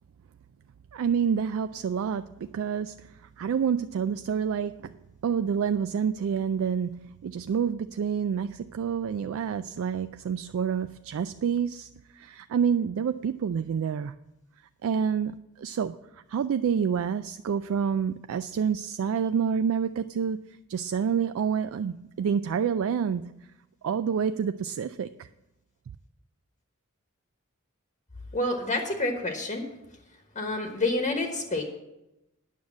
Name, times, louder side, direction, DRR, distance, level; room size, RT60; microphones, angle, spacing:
voice 1, 0.9-14.1 14.8-23.5 23.8-25.3, right 7 dB, 65° right, 11 dB, 0.3 m, -28 dB
voice 2, 28.3-29.7 30.3-31.6, left 2 dB, 35° left, 3 dB, 1.1 m, -28 dB
9.4 x 6.4 x 7.2 m, 0.93 s
head